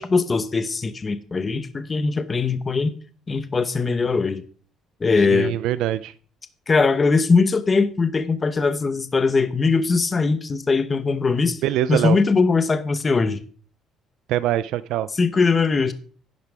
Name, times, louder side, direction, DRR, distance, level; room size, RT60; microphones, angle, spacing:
voice 1, 0.0-2.9 3.3-4.4 5.0-5.6 6.7-11.6 11.9-13.4 15.2-15.9, left 4 dB, 25° left, 0.8 m, -21 dB
voice 2, 5.3-6.1 11.6-12.2 14.3-15.1, right 13 dB, 80° right, 0.4 m, -23 dB
10.5 x 10.0 x 3.5 m
cardioid pair, 135°, 0 cm